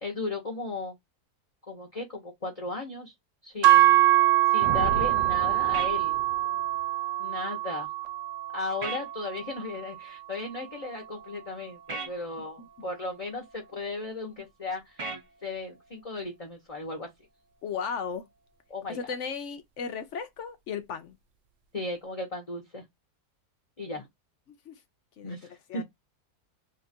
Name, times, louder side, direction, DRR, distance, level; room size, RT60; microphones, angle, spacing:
voice 1, 0.0-1.0 1.7-3.1 3.4-4.0 4.5-6.2 7.2-7.9 8.5-17.1 18.7-19.0 21.7-22.8 23.8-24.0 25.2-25.8, left 3 dB, 30° left, 0.7 m, -36 dB
sound 1, 3.6-11.9, right 15 dB, 65° right, 0.9 m, -25 dB
Thunder, 4.6-6.8, right 6 dB, 85° right, 1.1 m, -36 dB
sound 2, 5.7-5.9 8.8-9.0 11.9-12.1 15.0-15.2, right 3 dB, 40° right, 0.4 m, -35 dB
voice 2, 17.6-18.3 18.9-21.2 24.5-24.8 25.2-25.4 25.7-25.8, left 6 dB, 65° left, 0.7 m, -36 dB
2.9 x 2.3 x 4.0 m
omnidirectional pair, 1.7 m